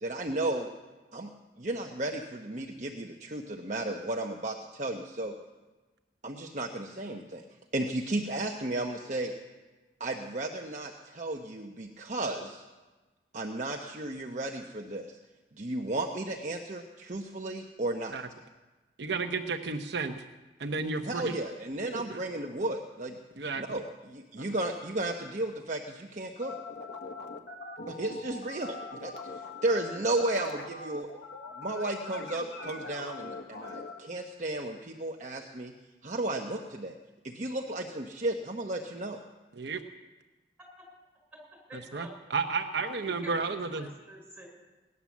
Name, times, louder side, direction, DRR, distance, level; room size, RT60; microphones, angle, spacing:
voice 1, 0.0-0.7 1.1-1.3 1.6-5.3 6.2-7.4 7.7-9.3 10.0-12.6 13.3-15.2 15.6-18.1 21.0-23.2 23.6-26.5 27.9-28.8 29.0-31.1 31.6-35.7 36.0-36.9 37.2-39.2, right 2 dB, 45° right, 1 dB, 1.0 m, -34 dB
voice 2, 19.0-20.2 20.6-21.3 21.9-22.2 23.4-23.8 24.4-24.5 39.5-39.8 41.9-43.9, right 4 dB, 75° right, 5 dB, 0.9 m, -32 dB
sound 1, 26.4-34.0, left 3 dB, 70° left, 1.5 m, -42 dB
voice 3, 41.7-42.1 43.0-44.5, right 1 dB, 5° right, -3 dB, 6.3 m, -47 dB
18.0 x 11.0 x 7.3 m, 1.2 s
head